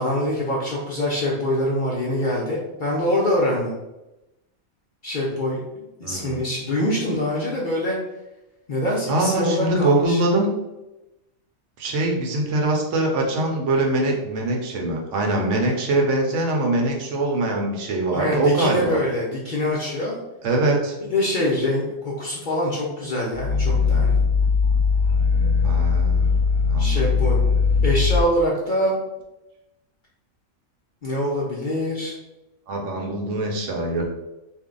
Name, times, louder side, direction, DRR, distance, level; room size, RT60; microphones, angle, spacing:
voice 1, 0.0-3.7 5.0-8.0 8.7-10.2 18.1-20.2 21.1-24.2 26.8-27.4 27.8-28.9 31.0-32.1, left 1 dB, 60° left, -4 dB, 0.5 m, -24 dB
voice 2, 6.0-6.4 9.1-10.5 11.8-19.0 20.4-20.9 25.6-26.4 26.7-27.0 32.7-34.1, right 2 dB, 70° right, 0 dB, 1.0 m, -23 dB
Growling, 23.3-28.3, left 5 dB, 85° right, 1.2 m, -19 dB
2.6 x 2.1 x 3.7 m, 0.98 s
omnidirectional pair, 1.4 m